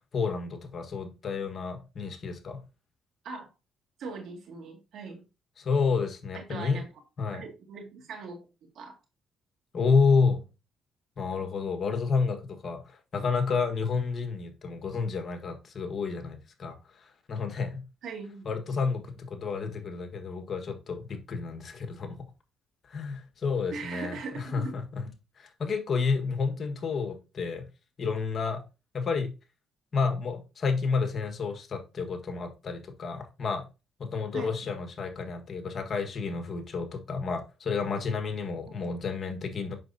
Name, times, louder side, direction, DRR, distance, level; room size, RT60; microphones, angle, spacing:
voice 1, 0.1-2.6 5.6-6.8 7.2-7.4 9.7-10.4 11.2-12.8 13.1-16.8 17.3-17.8 18.4-22.2 22.9-25.0 25.4-27.6 28.0-28.6 28.9-29.3 29.9-33.6 34.0-39.8, left 5 dB, 50° left, 5 dB, 1.5 m, -30 dB
voice 2, 4.0-5.3 6.3-6.9 7.3-9.0 18.0-18.5 23.7-24.8 34.3-34.5 38.7-38.8, right 4 dB, 75° right, 3 dB, 2.2 m, -40 dB
7.6 x 6.1 x 2.7 m, 0.29 s
cardioid pair, 90°, 0 cm